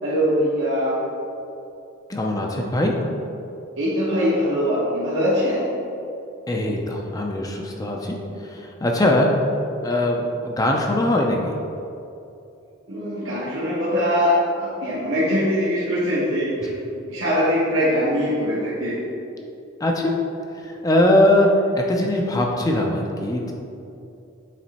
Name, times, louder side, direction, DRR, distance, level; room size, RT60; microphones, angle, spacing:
voice 1, 0.0-1.0 3.8-5.6 12.9-16.7 17.1-19.0, equal, 75° right, -10 dB, 1.2 m, -22 dB
voice 2, 2.1-2.9 6.5-9.3 9.8-11.6 19.8-20.2 20.6-21.5 21.7-23.5, left 1 dB, 20° left, 0 dB, 0.5 m, -21 dB
7.3 x 3.1 x 4.1 m, 2.7 s
head